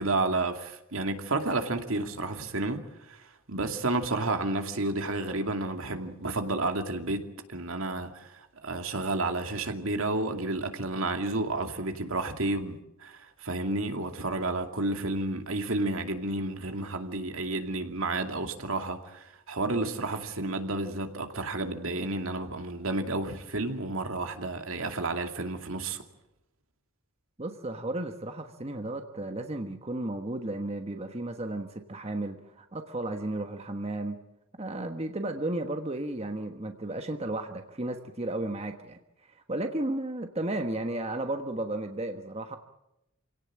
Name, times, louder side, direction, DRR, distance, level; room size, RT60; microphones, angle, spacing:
voice 1, 0.0-26.0, right 2 dB, 65° right, 2.5 m, -31 dB
voice 2, 27.4-34.2 34.5-39.0 39.5-42.6, right 1 dB, 30° right, 1.3 m, -33 dB
27.5 x 17.5 x 8.8 m
head